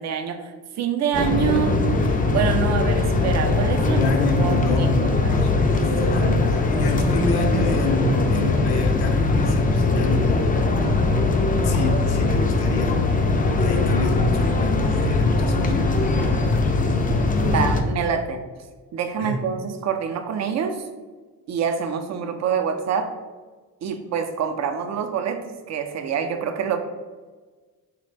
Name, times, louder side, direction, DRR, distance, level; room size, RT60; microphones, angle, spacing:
voice 1, 0.0-1.8 2.1-4.0 4.4-5.3 17.4-18.5 18.9-20.9 21.5-23.1 23.8-26.8, right 7 dB, 45° right, 7 dB, 0.4 m, -26 dB
sound 1, 1.1-17.8, left 3 dB, 25° left, 0.4 m, -21 dB
voice 2, 3.8-10.4 11.5-13.0 13.4-16.1 19.2-19.4, left 2 dB, 70° left, 3 dB, 0.6 m, -28 dB
3.2 x 2.1 x 3.2 m, 1.4 s
supercardioid pair, 65°, 40 cm